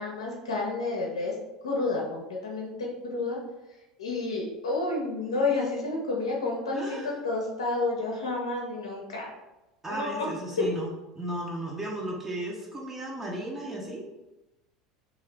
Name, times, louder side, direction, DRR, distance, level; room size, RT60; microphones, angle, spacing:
voice 1, 0.0-1.3 1.6-3.4 4.0-9.3 9.9-10.3 10.6-10.7, left 3 dB, 75° left, -1 dB, 0.6 m, -30 dB
voice 2, 6.7-7.1 9.8-14.1, right 1 dB, 15° right, -3 dB, 0.7 m, -35 dB
2.7 x 2.4 x 3.2 m, 1.0 s
figure-of-eight pair, 75°, 3 cm